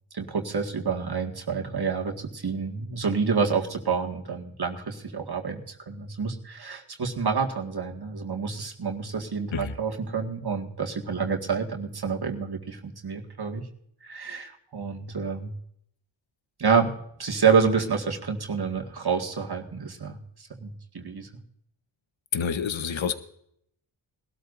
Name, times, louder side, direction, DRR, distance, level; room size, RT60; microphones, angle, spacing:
voice 1, 0.1-13.7 14.0-15.5 16.6-16.9 17.2-21.3, right 5 dB, 55° right, 2 dB, 2.0 m, -28 dB
voice 2, 22.3-23.2, left 6 dB, 70° left, 10 dB, 1.2 m, -28 dB
22.0 x 13.0 x 2.6 m, 0.69 s
wide cardioid pair, 70°, 47 cm